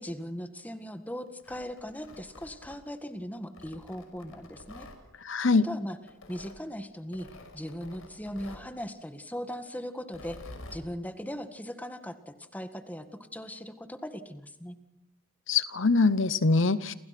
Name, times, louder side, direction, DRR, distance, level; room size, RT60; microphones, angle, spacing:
voice 1, 0.0-4.9 5.6-6.0 6.3-7.3 7.5-10.4 10.7-14.8, equal, 5° left, 8 dB, 1.8 m, -39 dB
Tearing, 1.3-3.0 3.5-5.0 6.1-6.6 7.1-8.7 10.0-10.8, left 1 dB, 75° left, 5.5 m, -48 dB
voice 2, 5.2-5.7 15.5-16.9, left 3 dB, 60° left, 15 dB, 0.9 m, -23 dB
30.0 x 28.0 x 6.0 m, 0.88 s
head